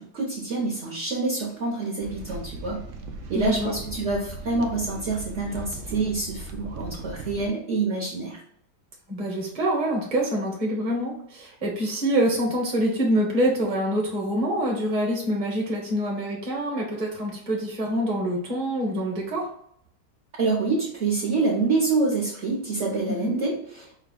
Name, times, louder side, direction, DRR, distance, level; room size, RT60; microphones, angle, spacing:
voice 1, 0.0-2.8 3.3-8.4 20.4-24.0, right 3 dB, 50° right, -5 dB, 1.1 m, -26 dB
sound 1, 2.0-7.5, right 3 dB, 75° right, 0.7 m, -38 dB
voice 2, 3.3-3.7 9.1-19.5 23.1-23.3, right 1 dB, 25° right, -2 dB, 1.1 m, -26 dB
4.9 x 2.3 x 3.8 m, 0.68 s
omnidirectional pair, 1.9 m